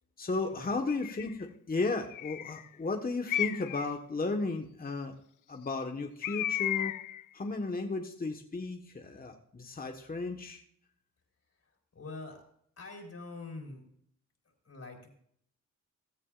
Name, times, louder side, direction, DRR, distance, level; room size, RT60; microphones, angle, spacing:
voice 1, 0.2-5.2 5.5-7.0 7.3-10.6, left 3 dB, 30° left, 4 dB, 1.3 m, -34 dB
Bird, 0.9-1.3 2.1-2.6 3.3-3.9 6.2-7.2, left 13 dB, 80° left, 0.5 m, -34 dB
voice 2, 11.9-12.4 12.8-13.8 14.6-15.1, left 3 dB, 50° left, 1 dB, 4.2 m, -44 dB
16.5 x 13.5 x 2.5 m, 0.66 s
cardioid pair, 85°, 31 cm